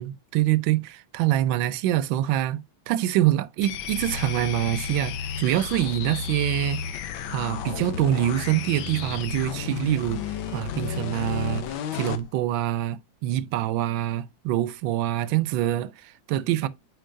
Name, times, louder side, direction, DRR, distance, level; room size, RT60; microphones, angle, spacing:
voice 1, 0.0-11.7 11.9-16.7, right 13 dB, 75° right, 1.3 m, -25 dB
sound 1, 3.6-12.3, left 8 dB, 70° left, 1.5 m, -32 dB
9.1 x 4.5 x 2.6 m
omnidirectional pair, 2.3 m